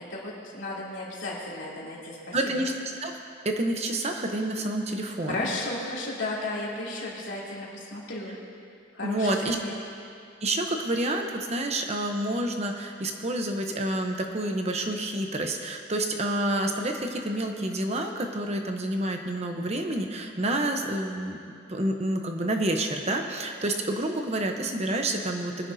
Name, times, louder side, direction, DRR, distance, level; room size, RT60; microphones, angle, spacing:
voice 1, 0.1-2.4 5.3-8.3 8.9-9.7, left 2 dB, 75° left, -5 dB, 2.9 m, -34 dB
voice 2, 2.3-2.7 3.0-3.1 3.4-5.5 9.0-9.6 10.4-21.4 21.7-25.7, right 1 dB, 35° right, 3 dB, 0.8 m, -28 dB
21.5 x 10.0 x 2.7 m, 2.4 s
head